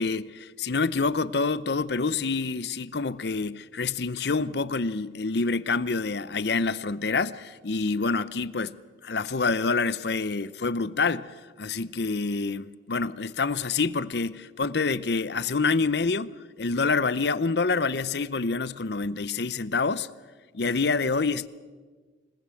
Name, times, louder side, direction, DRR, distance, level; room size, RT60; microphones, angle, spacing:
voice 1, 0.0-8.8 9.0-11.3 11.6-16.3 16.6-20.1 20.5-21.5, left 4 dB, 65° left, 0.7 m, -27 dB
25.5 x 19.0 x 7.7 m
head